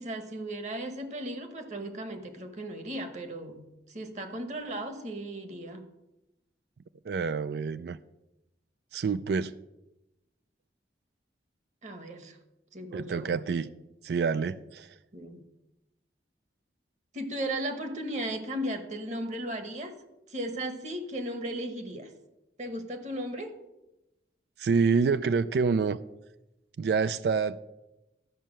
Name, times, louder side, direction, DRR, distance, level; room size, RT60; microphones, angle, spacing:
voice 1, 0.0-5.9 11.8-12.4 12.7-13.4 15.1-15.4 17.1-20.0 20.3-22.1 22.6-23.5, right 1 dB, 40° right, 8 dB, 1.1 m, -36 dB
voice 2, 7.0-8.0 8.9-9.5 12.9-13.7 14.0-15.0 24.6-26.0 26.8-27.6, right 5 dB, 65° right, 14 dB, 0.3 m, -27 dB
12.0 x 5.5 x 7.5 m, 0.95 s
head